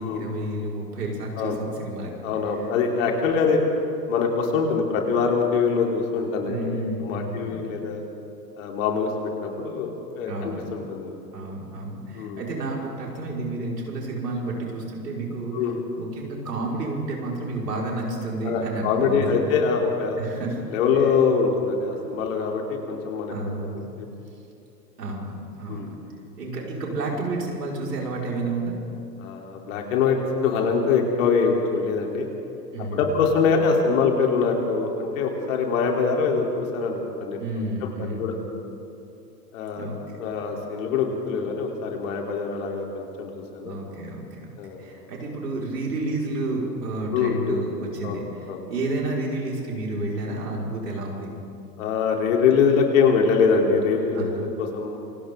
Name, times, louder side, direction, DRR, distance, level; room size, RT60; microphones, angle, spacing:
voice 1, 0.0-2.1 6.4-7.7 10.3-10.6 11.3-15.6 16.0-19.4 20.2-20.6 21.0-21.1 23.3-23.9 25.0-25.9 26.4-28.7 32.7-33.1 37.4-38.4 39.8-40.0 40.3-40.4 43.6-44.5 44.8-51.3 54.1-54.4, right 2 dB, 70° right, -2 dB, 5.4 m, -30 dB
voice 2, 2.2-3.6 4.1-8.0 8.6-11.1 12.2-12.4 15.5-15.9 18.4-20.2 20.7-23.3 23.7-24.1 25.7-25.9 29.2-32.3 32.9-38.3 39.5-39.9 40.2-43.8 44.6-44.8 47.1-47.6 48.0-48.2 48.5-48.6 51.8-55.0, left 5 dB, 50° left, 1 dB, 3.7 m, -24 dB
28.5 x 25.0 x 3.8 m, 2.8 s
figure-of-eight pair, 100°, 50 cm